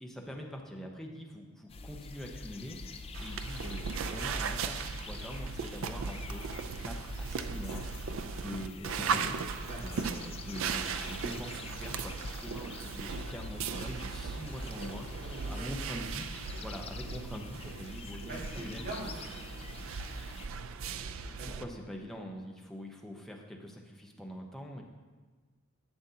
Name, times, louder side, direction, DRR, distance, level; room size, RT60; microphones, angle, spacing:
voice 1, 0.0-6.5 6.8-7.8 8.2-9.4 9.8-16.2 16.6-18.8 21.5-24.8, equal, ahead, 0 dB, 0.8 m, -44 dB
sound 1, 1.7-20.5, left 3 dB, 25° left, 0.4 m, -46 dB
sound 2, 3.1-21.6, right 5 dB, 65° right, 0.4 m, -38 dB
sound 3, 6.1-13.4, left 5 dB, 75° left, 2.8 m, -57 dB
voice 2, 15.1-15.7 18.0-19.2 21.4-21.8, right 1 dB, 45° right, -3 dB, 1.8 m, -43 dB
11.5 x 7.6 x 2.8 m, 1.4 s
head